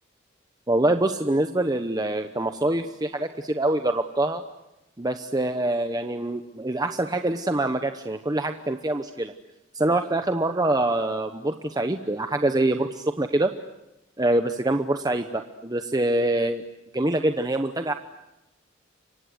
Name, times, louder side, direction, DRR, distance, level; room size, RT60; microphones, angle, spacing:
voice 1, 0.7-4.4 5.0-9.3 9.7-13.5 14.2-16.6 16.9-17.9, right 1 dB, 20° right, 7 dB, 1.0 m, -25 dB
29.5 x 25.0 x 8.0 m, 0.95 s
head